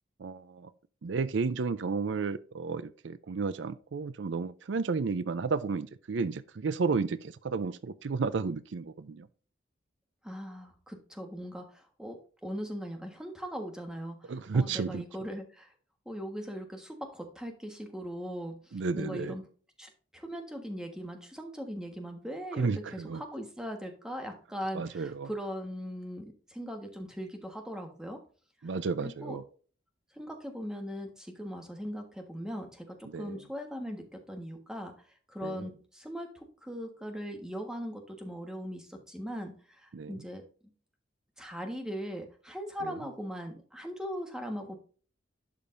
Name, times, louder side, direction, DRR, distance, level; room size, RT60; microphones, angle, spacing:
voice 1, 0.2-0.7 1.0-9.3 14.3-15.0 18.7-19.4 22.6-23.2 24.7-25.3 28.6-29.4 33.1-33.4 35.4-35.7 39.9-40.2 42.8-43.0, right 4 dB, 70° right, 0.5 m, -32 dB
voice 2, 10.2-15.7 16.0-19.4 19.8-28.2 28.6-29.4 30.1-34.9 35.3-40.4 41.4-44.8, equal, 5° right, 1.3 m, -40 dB
11.5 x 5.1 x 2.6 m
head